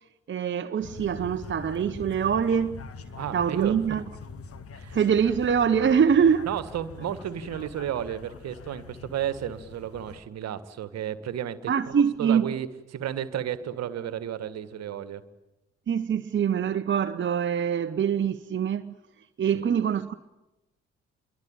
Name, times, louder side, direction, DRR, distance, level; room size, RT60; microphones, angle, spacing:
voice 1, 0.3-2.8 3.3-4.0 4.9-6.5 11.7-12.5 15.9-18.9 19.4-20.1, right 7 dB, 35° right, 1.2 m, -24 dB
sound 1, 0.8-10.2, left 4 dB, 45° left, 2.2 m, -43 dB
voice 2, 3.2-3.8 4.7-5.0 6.4-15.2 19.5-19.6, right 10 dB, 55° right, 1.8 m, -33 dB
27.0 x 23.5 x 9.0 m
figure-of-eight pair, 40°, 31 cm